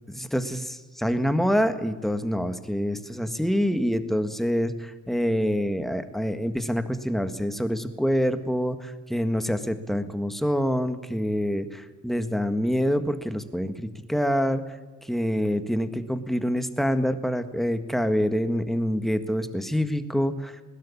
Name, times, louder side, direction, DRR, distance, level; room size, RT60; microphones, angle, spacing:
voice 1, 0.1-14.6 15.0-20.6, equal, ahead, 9 dB, 1.7 m, -26 dB
20.5 x 17.0 x 8.7 m, 1.3 s
cardioid pair, 110°, 31 cm